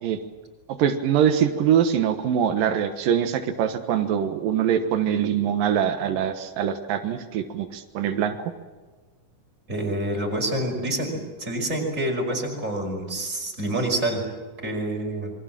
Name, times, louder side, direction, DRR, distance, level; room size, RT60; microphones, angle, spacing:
voice 1, 0.8-8.4, right 9 dB, 90° right, 7 dB, 3.1 m, -23 dB
voice 2, 9.7-14.2 14.6-15.3, right 1 dB, 20° right, 1 dB, 5.7 m, -27 dB
28.0 x 23.0 x 7.5 m, 1.3 s
omnidirectional pair, 3.8 m